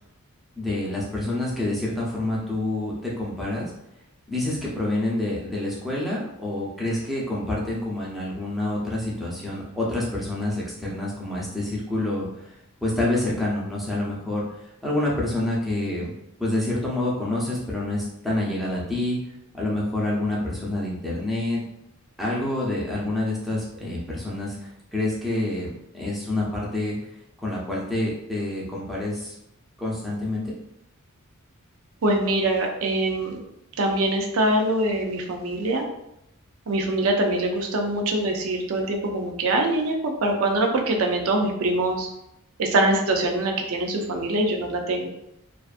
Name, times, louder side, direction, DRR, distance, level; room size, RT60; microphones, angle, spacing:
voice 1, 0.6-3.7 4.3-12.5 12.8-14.4 14.8-16.1 16.4-19.2 19.5-21.6 22.2-24.6 24.9-27.0 27.4-29.3 29.8-30.5, left 1 dB, ahead, -6 dB, 0.5 m, -27 dB
voice 2, 32.0-33.4 33.8-35.9 36.7-42.1 42.6-45.1, right 1 dB, 70° right, 2 dB, 0.4 m, -23 dB
2.4 x 2.3 x 2.4 m, 0.81 s
head